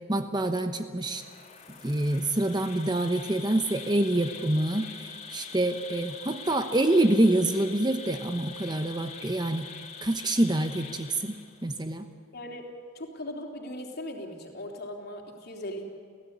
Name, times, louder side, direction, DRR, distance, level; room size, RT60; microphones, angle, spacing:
voice 1, 0.1-1.2 1.8-9.7 10.0-11.3 11.6-12.1, right 1 dB, 20° right, 8 dB, 1.0 m, -26 dB
Insect, 1.0-11.8, left 5 dB, 35° left, 3.1 m, -44 dB
voice 2, 12.3-12.7 12.9-15.9, left 1 dB, 50° left, 1 dB, 3.7 m, -38 dB
30.0 x 16.5 x 9.6 m, 2.1 s
head